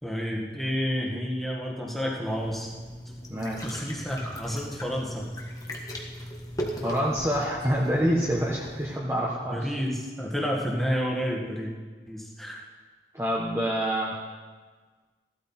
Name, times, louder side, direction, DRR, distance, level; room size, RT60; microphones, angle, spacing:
voice 1, 0.0-2.7 3.6-5.3 9.4-11.7 12.1-12.6, equal, ahead, -2 dB, 1.7 m, -30 dB
sound 1, 2.3-9.0, equal, 20° left, 1.5 m, -38 dB
voice 2, 3.3-3.7 6.8-9.6 13.1-14.2, equal, 15° right, -4 dB, 1.2 m, -27 dB
15.5 x 12.0 x 4.4 m, 1.4 s
head